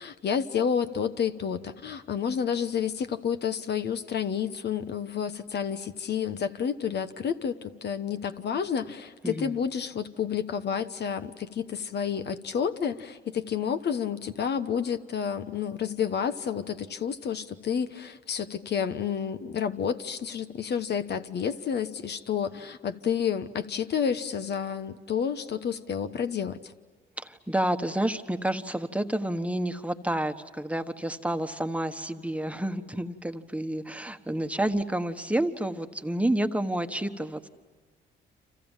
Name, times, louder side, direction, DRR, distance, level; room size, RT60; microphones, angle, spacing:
voice 1, 0.0-26.6, left 7 dB, 55° left, 9 dB, 1.2 m, -30 dB
voice 2, 27.2-37.5, right 1 dB, 5° right, 7 dB, 1.4 m, -29 dB
30.0 x 27.0 x 7.4 m, 1.4 s
cardioid pair, 90°, 20 cm